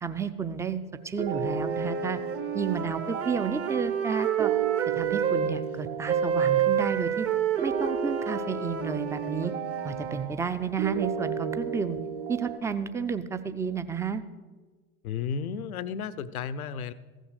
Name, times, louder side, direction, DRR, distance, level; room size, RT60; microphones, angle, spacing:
voice 1, 0.0-2.2 2.5-4.5 5.0-7.3 7.6-9.5 9.8-12.0 12.3-14.2, right 6 dB, 5° right, 11 dB, 0.4 m, -31 dB
sound 1, 1.2-12.6, right 5 dB, 65° right, 1.6 m, -34 dB
sound 2, 1.4-5.5 6.1-10.3, right 9 dB, 30° right, 0.9 m, -29 dB
voice 2, 15.0-16.9, left 6 dB, 75° left, 15 dB, 0.7 m, -33 dB
15.0 x 6.3 x 6.4 m, 1.4 s
figure-of-eight pair, 75°, 44 cm